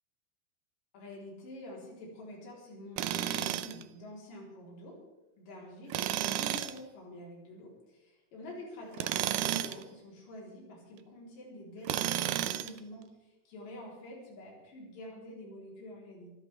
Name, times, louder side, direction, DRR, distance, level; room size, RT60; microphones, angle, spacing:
voice 1, 0.9-5.0 5.4-16.3, left 1 dB, 70° left, -3 dB, 5.7 m, -47 dB
Tools, 3.0-3.8 5.9-6.8 8.9-9.8 11.9-12.8, right 12 dB, 75° right, 2.2 m, -32 dB
24.5 x 14.0 x 3.6 m, 1.1 s
omnidirectional pair, 4.1 m